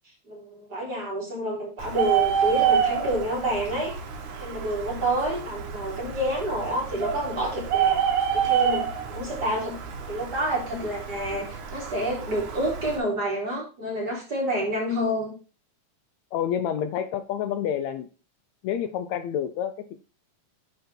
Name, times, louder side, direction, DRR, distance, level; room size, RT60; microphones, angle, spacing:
voice 1, 0.3-3.9 4.4-8.0 8.3-9.8 10.1-15.3, right 1 dB, 30° right, -3 dB, 4.3 m, -28 dB
Bird, 1.8-13.0, right 8 dB, 80° right, 3.1 m, -28 dB
voice 2, 16.3-18.1 18.6-20.0, left 9 dB, 75° left, 10 dB, 1.9 m, -28 dB
10.5 x 5.3 x 4.4 m, 0.34 s
omnidirectional pair, 3.4 m